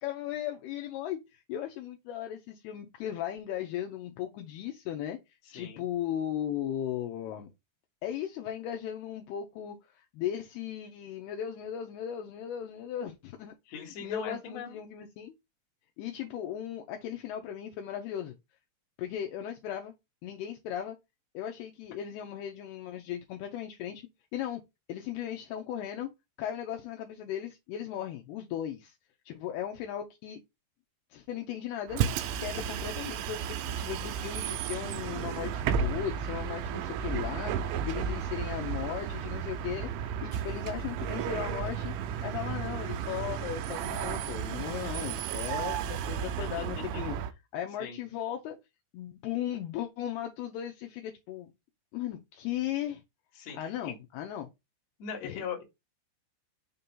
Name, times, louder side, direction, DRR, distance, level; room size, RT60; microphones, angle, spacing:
voice 1, 0.0-7.5 8.0-15.3 16.0-18.4 19.0-19.9 20.2-21.0 21.3-24.6 24.9-26.1 26.4-28.9 29.3-30.4 31.1-32.0 32.4-41.9 42.2-47.2 47.5-48.6 48.9-51.5 51.9-53.0 53.5-54.5 55.2-55.4, left 10 dB, 80° left, 2.4 m, -37 dB
voice 2, 5.5-5.9 13.7-14.8 32.6-32.7 46.4-47.0 47.8-48.0 53.4-54.0 55.0-55.6, left 6 dB, 50° left, 2.2 m, -40 dB
Bus, 31.9-47.3, right 8 dB, 90° right, 3.0 m, -33 dB
6.7 x 2.8 x 5.3 m
omnidirectional pair, 5.2 m